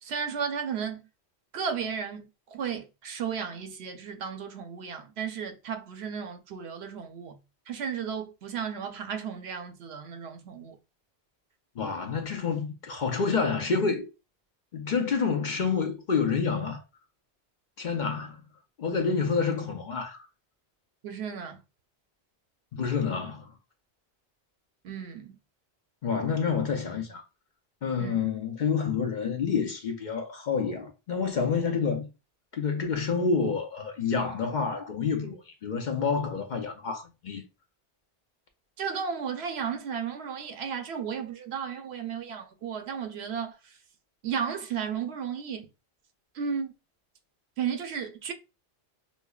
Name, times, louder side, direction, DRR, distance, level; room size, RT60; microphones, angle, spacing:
voice 1, 0.0-1.0 1.5-7.4 7.7-10.8 21.0-21.6 24.8-25.4 28.0-28.3 38.8-43.8 44.2-45.7 46.3-46.7 47.6-48.3, right 7 dB, 75° right, 0.9 m, -34 dB
voice 2, 11.8-14.1 14.7-16.8 17.8-18.4 18.8-20.3 22.7-23.5 26.0-27.2 27.8-32.1 32.5-37.4, left 5 dB, 50° left, 0.7 m, -28 dB
5.3 x 2.0 x 2.3 m
omnidirectional pair, 1.1 m